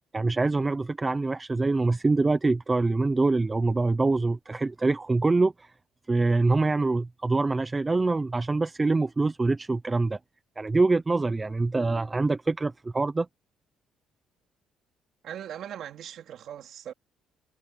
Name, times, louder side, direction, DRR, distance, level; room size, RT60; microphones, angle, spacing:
voice 1, 0.1-5.7 6.1-10.2 10.6-13.3, right 3 dB, 15° right, 0.6 m, -25 dB
voice 2, 15.2-16.9, right 10 dB, 50° right, 3.3 m, -39 dB
cardioid pair, 180°, 0 cm